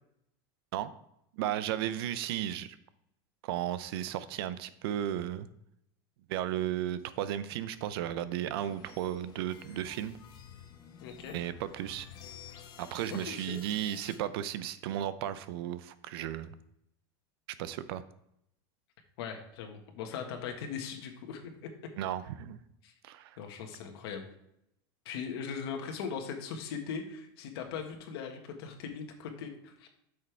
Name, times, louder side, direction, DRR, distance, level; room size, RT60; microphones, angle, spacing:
voice 1, 1.3-2.8 3.4-5.5 6.3-10.2 11.3-12.1 12.8-16.6 17.6-18.0 22.0-22.6 23.0-23.4, right 11 dB, 65° right, 14 dB, 0.6 m, -34 dB
sound 1, 8.6-14.2, left 8 dB, 30° left, 0.9 m, -51 dB
voice 2, 11.0-11.4 13.1-13.6 19.2-21.7 22.8-22.9 23.4-24.2 25.0-29.9, left 6 dB, 70° left, 4 dB, 1.6 m, -39 dB
8.5 x 6.6 x 3.4 m, 0.77 s
supercardioid pair, 165°, 14 cm